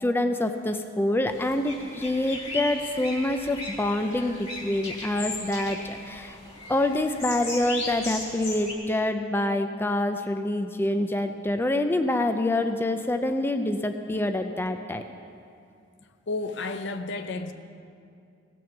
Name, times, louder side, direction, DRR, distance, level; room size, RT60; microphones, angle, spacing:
voice 1, 0.0-6.4 6.7-15.0, left 1 dB, 10° left, 7 dB, 0.4 m, -26 dB
sound 1, 1.3-8.7, left 2 dB, 30° left, 2.7 m, -37 dB
voice 2, 16.3-17.5, left 3 dB, 65° left, 8 dB, 0.7 m, -31 dB
17.0 x 6.1 x 7.1 m, 2.5 s
head